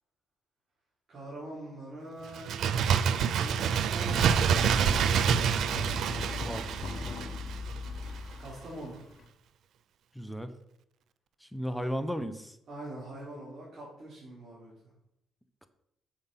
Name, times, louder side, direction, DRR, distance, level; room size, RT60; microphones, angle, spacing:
voice 1, 1.1-6.6 8.4-9.0 11.7-12.0 12.7-14.7, right 1 dB, 55° right, -7 dB, 4.4 m, -45 dB
Bird, 2.3-7.9 8.2-8.3, right 7 dB, 75° right, 0.5 m, -27 dB
sound 1, 4.1-9.2, left 3 dB, 50° left, 1.3 m, -38 dB
voice 2, 6.4-6.8 10.1-10.5 11.4-12.6, equal, ahead, 9 dB, 0.9 m, -35 dB
7.5 x 7.3 x 5.9 m, 0.80 s
cardioid pair, 90°, 0 cm